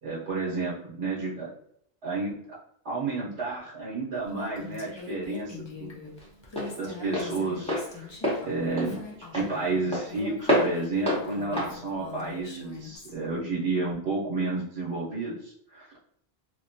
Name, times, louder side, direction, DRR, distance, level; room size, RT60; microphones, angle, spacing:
voice 1, 0.0-1.5 2.0-2.6 2.8-5.9 6.6-8.1 8.4-9.0 9.3-15.9, right 3 dB, 80° right, -6 dB, 1.0 m, -31 dB
Female speech woman speaking, 4.3-13.1, left 5 dB, 35° left, 0.5 m, -42 dB
Walk footsteps, 4.3-13.0, equal, 5° left, 0.8 m, -31 dB
3.0 x 2.1 x 2.5 m, 0.70 s
omnidirectional pair, 1.1 m